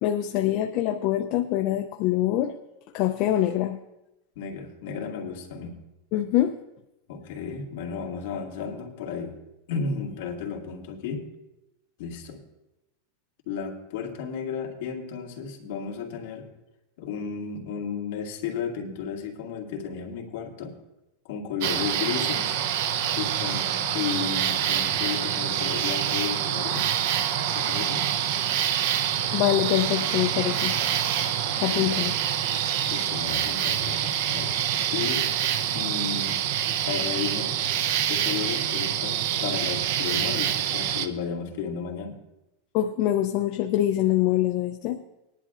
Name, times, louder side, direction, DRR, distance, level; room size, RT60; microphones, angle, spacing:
voice 1, 0.0-2.5 2.9-3.8 6.1-6.6 29.3-30.8 31.6-32.1 42.7-45.0, left 13 dB, 35° left, 6 dB, 0.5 m, -24 dB
voice 2, 4.4-5.8 7.1-9.4 9.7-11.3 12.0-12.4 13.5-16.5 17.0-20.8 21.3-22.6 23.2-26.9 27.5-28.1 31.6-31.9 32.9-34.6 34.9-35.3 35.7-36.4 36.8-37.5 38.0-42.2, left 6 dB, 55° left, 0 dB, 2.0 m, -33 dB
sound 1, 21.6-41.1, right 10 dB, 50° right, 0.6 m, -26 dB
20.0 x 11.0 x 2.5 m, 0.93 s
supercardioid pair, 175°, 0 cm